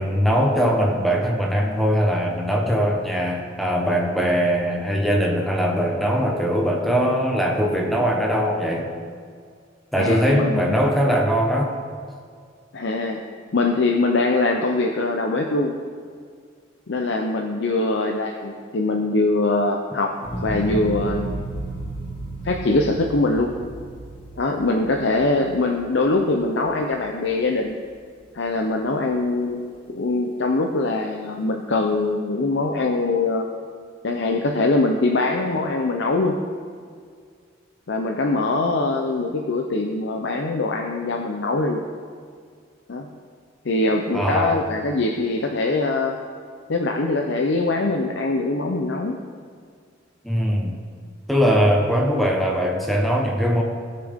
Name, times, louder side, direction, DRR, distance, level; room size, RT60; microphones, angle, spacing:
voice 1, 0.0-8.9 9.9-11.7 44.1-44.6 50.2-50.8 51.3-53.6, equal, ahead, 0 dB, 0.9 m, -21 dB
voice 2, 10.0-10.8 12.7-13.2 13.5-15.8 16.9-20.2 20.4-21.3 22.4-23.6 24.4-27.8 28.3-29.6 29.9-33.5 34.0-36.4 37.9-41.8 42.9-43.1 43.6-46.2 46.7-49.2, left 2 dB, 65° left, 2 dB, 0.7 m, -22 dB
sound 1, 20.2-26.5 27.0-27.6, right 2 dB, 30° left, 2.0 m, -33 dB
17.5 x 6.7 x 3.6 m, 2.1 s
head